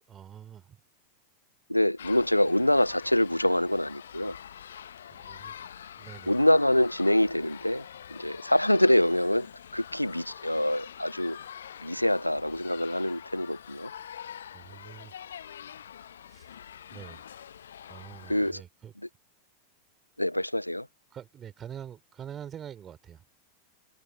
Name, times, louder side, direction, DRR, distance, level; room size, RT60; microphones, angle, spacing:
voice 1, 0.1-0.8 5.1-5.6 6.0-6.5 14.5-15.1 16.3-16.5 16.9-17.2 17.9-18.9 21.1-23.2, right 9 dB, 25° right, 3.2 m, -45 dB
voice 2, 1.7-4.4 6.3-7.8 8.1-9.5 9.7-11.4 11.8-13.9 18.3-18.6 20.2-20.9, left 1 dB, 90° left, 0.8 m, -25 dB
sound 1, 2.0-18.5, left 9 dB, 65° left, 1.0 m, -45 dB
figure-of-eight pair, 90°, 0 cm